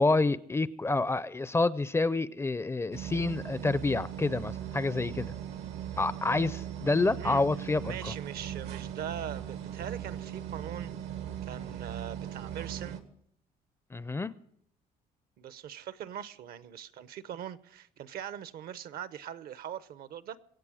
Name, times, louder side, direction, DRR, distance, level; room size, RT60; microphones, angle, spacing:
voice 1, 0.0-5.3 6.0-8.1 13.9-14.3, left 3 dB, 15° left, 0.4 m, -28 dB
sound 1, 2.9-13.0, right 10 dB, 90° right, 1.7 m, -39 dB
voice 2, 7.8-10.9 11.4-13.0 15.4-20.4, right 9 dB, 65° right, 0.8 m, -41 dB
23.5 x 8.2 x 4.9 m
cardioid pair, 110°, 17 cm